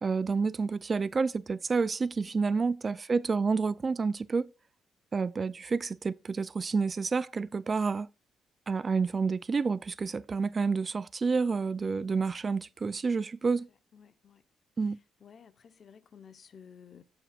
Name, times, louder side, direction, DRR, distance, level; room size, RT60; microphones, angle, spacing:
voice 1, 0.0-4.5 5.1-8.1 8.7-13.7 14.8-15.0, right 4 dB, 35° right, 0.4 m, -29 dB
voice 2, 2.3-2.6 13.9-14.4 15.2-17.0, left 7 dB, 50° left, 0.9 m, -54 dB
16.5 x 5.9 x 2.4 m
cardioid pair, 90°, 0 cm